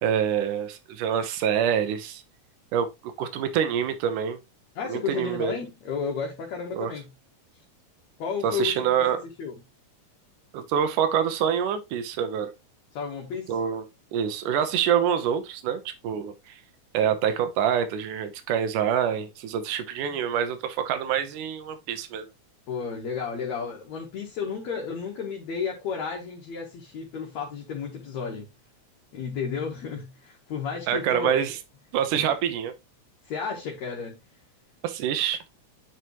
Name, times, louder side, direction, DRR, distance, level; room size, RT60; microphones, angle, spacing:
voice 1, 0.0-2.2 2.7-4.4 4.9-5.6 6.7-6.9 8.4-9.2 10.5-12.5 13.5-13.9 14.1-16.6 16.9-22.3 30.9-31.5 31.9-32.7 34.8-35.4, right 8 dB, 80° right, 2.5 m, -26 dB
voice 2, 4.8-7.1 8.2-9.1 9.4-9.6 12.9-13.6 22.7-28.5 29.1-31.4 32.1-32.4 33.2-34.2, left 6 dB, 65° left, 2.3 m, -32 dB
9.3 x 5.0 x 3.0 m
omnidirectional pair, 3.7 m